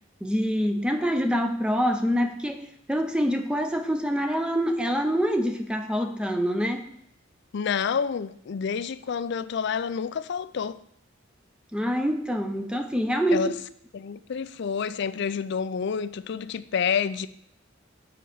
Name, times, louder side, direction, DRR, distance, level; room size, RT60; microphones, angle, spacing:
voice 1, 0.2-6.9 11.7-13.5, equal, 5° right, 0.6 m, -26 dB
voice 2, 7.5-10.8 13.3-13.5 13.9-17.3, left 6 dB, 60° left, 0.4 m, -28 dB
7.7 x 4.4 x 6.6 m
head